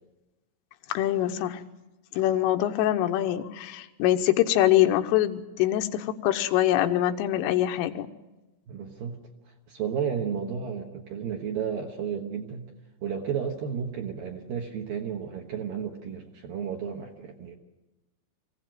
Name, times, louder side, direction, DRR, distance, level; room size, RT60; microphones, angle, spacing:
voice 1, 0.9-1.6 2.2-8.1, left 13 dB, 90° left, 7 dB, 3.5 m, -24 dB
voice 2, 8.7-9.2 9.7-12.7 13.0-17.6, right 7 dB, 65° right, 2 dB, 2.4 m, -32 dB
23.5 x 16.5 x 9.3 m, 1.1 s
omnidirectional pair, 5.7 m